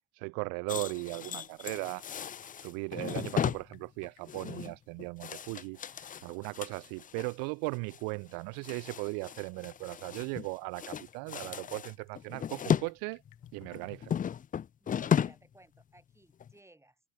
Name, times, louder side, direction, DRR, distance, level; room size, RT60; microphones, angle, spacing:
voice 1, 0.1-2.1 2.6-13.2 13.5-14.1, right 40 dB or more, 60° right, 0.7 m, -38 dB
sound 1, 0.7-7.3 7.7-8.0 8.3-10.5 10.7-12.9 13.2-15.5 15.8-16.0 16.4-16.5, left 8 dB, 20° left, 0.5 m, -35 dB
sound 2, 2.5-14.5, left 16 dB, 55° left, 6.4 m, -68 dB
voice 2, 14.8-17.0, right 1 dB, 5° right, 3.9 m, -61 dB
hypercardioid pair, 80°, 41 cm